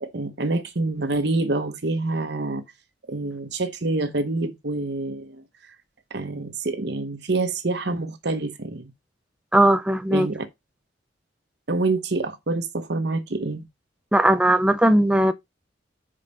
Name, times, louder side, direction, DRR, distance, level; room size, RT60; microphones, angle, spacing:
voice 1, 0.0-2.6 3.1-5.4 6.1-8.9 10.1-10.5 11.7-13.7, right 2 dB, 60° right, 0.9 m, -26 dB
voice 2, 9.5-10.3 14.1-15.3, right 1 dB, 5° right, 0.5 m, -18 dB
5.6 x 5.1 x 5.3 m
head